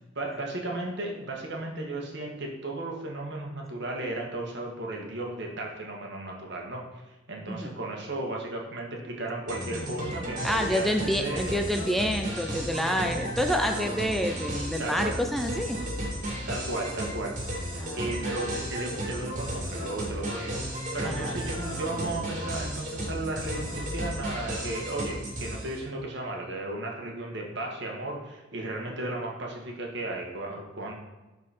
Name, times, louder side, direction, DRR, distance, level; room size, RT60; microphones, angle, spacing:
voice 1, 0.2-6.8 7.3-11.8 14.8-15.2 16.5-17.6 17.9-20.7 20.9-30.9, right 2 dB, 65° right, 0 dB, 1.9 m, -35 dB
sound 1, 9.5-25.8, equal, 45° right, 2.5 m, -34 dB
voice 2, 10.4-15.8 17.7-18.1 21.0-21.4, equal, ahead, 4 dB, 0.5 m, -28 dB
11.5 x 4.6 x 4.4 m, 1.1 s
head